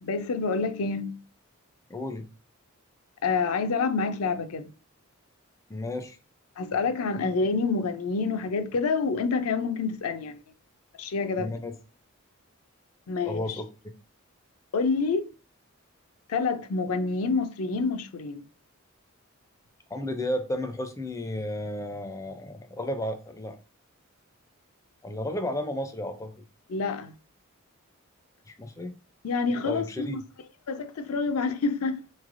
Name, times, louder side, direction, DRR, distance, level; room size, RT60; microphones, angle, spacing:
voice 1, 0.0-1.2 3.2-4.7 6.6-10.4 11.0-11.5 13.1-13.6 14.7-15.3 16.3-18.4 26.7-27.1 29.2-30.2 30.7-32.0, left 4 dB, 75° left, 0.4 m, -27 dB
voice 2, 1.9-2.3 5.7-6.2 11.4-11.7 13.3-13.7 19.9-23.6 25.0-26.3 28.5-29.0 29.6-30.2, left 1 dB, 15° left, 0.4 m, -33 dB
4.0 x 3.2 x 2.5 m
head